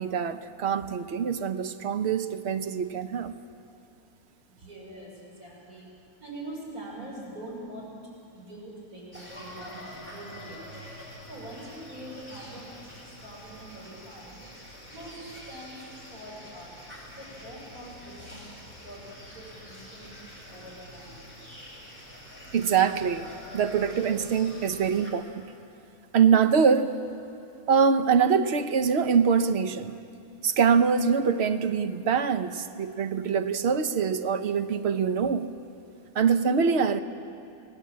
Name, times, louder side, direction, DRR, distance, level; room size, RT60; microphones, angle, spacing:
voice 1, 0.0-3.3 22.5-25.5 26.1-26.9 27.7-30.0 30.4-35.5 36.1-37.0, right 6 dB, 50° right, 9 dB, 1.0 m, -24 dB
voice 2, 4.6-5.9 6.2-7.9 8.3-10.7 11.3-12.7 13.2-14.4 14.9-15.2 15.5-15.8 16.1-16.7 17.2-18.4 18.8-19.0 19.3-20.1 20.5-21.2, right 1 dB, 75° right, -4 dB, 6.7 m, -43 dB
sound 1, 9.1-25.1, equal, 5° right, 4.3 m, -46 dB
25.5 x 17.0 x 7.6 m, 2.6 s
omnidirectional pair, 1.6 m